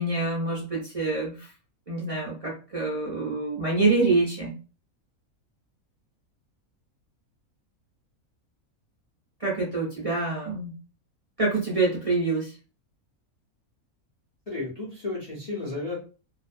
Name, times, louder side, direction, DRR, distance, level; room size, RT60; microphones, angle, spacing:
voice 1, 0.0-1.5 1.9-4.5 9.4-10.7 11.4-12.5, right 3 dB, 35° right, -5 dB, 0.6 m, -26 dB
voice 2, 14.5-15.9, left 2 dB, 35° left, -6 dB, 0.7 m, -33 dB
2.5 x 2.2 x 2.5 m, 0.34 s
omnidirectional pair, 1.5 m